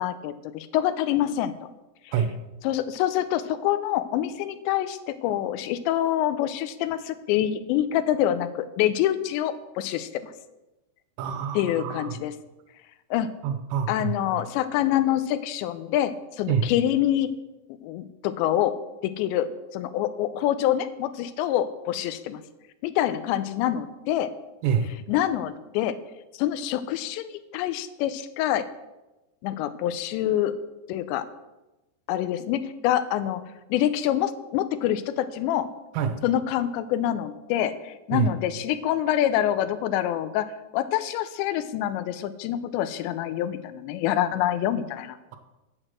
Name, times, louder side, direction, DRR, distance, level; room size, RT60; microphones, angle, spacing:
voice 1, 0.0-1.7 2.1-2.2 2.6-10.3 11.6-12.3 13.1-13.3 13.9-17.3 17.8-18.7 19.0-22.4 22.8-24.3 25.1-26.0 26.3-28.7 29.4-30.6 30.9-31.2 32.1-33.4 33.7-35.7 36.2-45.2, left 11 dB, 90° left, 13 dB, 2.9 m, -26 dB
voice 2, 11.2-12.2 13.4-14.2 16.5-16.7 24.6-24.9 35.9-36.2 38.1-38.3, right 7 dB, 90° right, 7 dB, 3.0 m, -26 dB
8.0 x 6.5 x 7.6 m, 1.0 s
omnidirectional pair, 5.0 m